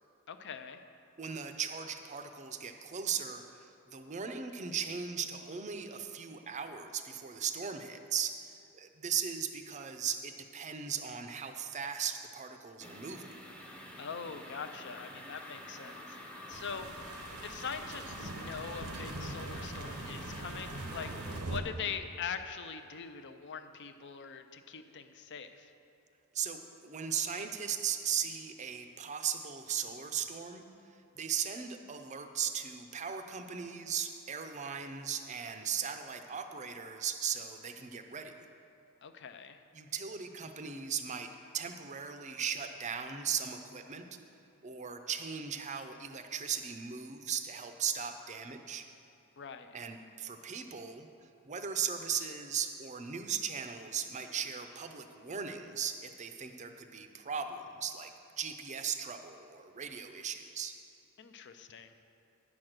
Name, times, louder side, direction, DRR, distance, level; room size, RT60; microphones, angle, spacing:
voice 1, 0.3-0.8 14.0-16.9 17.2-25.7 39.0-39.6 49.4-49.8 61.2-61.9, left 6 dB, 50° left, 9 dB, 0.5 m, -43 dB
voice 2, 1.2-8.3 8.7-13.3 26.3-38.5 39.7-44.1 44.6-48.9 49.7-51.1 51.4-58.1 58.4-60.7, right 7 dB, 30° right, 7 dB, 0.5 m, -38 dB
sound 1, 12.8-21.4, left 1 dB, 5° left, 0.7 m, -47 dB
sound 2, 16.5-21.6, right 2 dB, 90° right, 0.9 m, -42 dB
9.5 x 6.0 x 6.5 m, 2.7 s
head